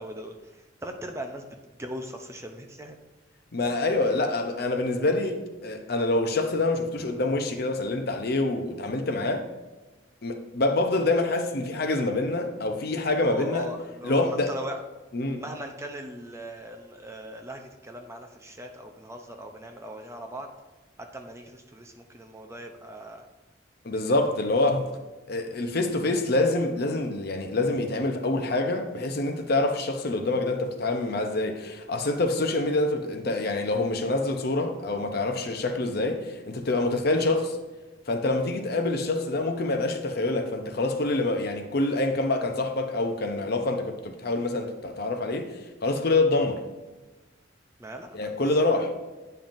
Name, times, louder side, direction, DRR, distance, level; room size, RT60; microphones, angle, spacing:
voice 1, 0.0-3.0 13.1-14.8 15.4-20.5 21.0-23.3 47.8-48.9, right 1 dB, 15° right, 0.5 m, -40 dB
voice 2, 3.5-9.5 10.2-13.7 14.0-14.5 15.1-15.4 23.8-24.9 25.3-37.6 38.1-45.5 45.8-46.6 48.1-48.9, left 2 dB, 55° left, 0.7 m, -26 dB
8.9 x 5.5 x 2.6 m
head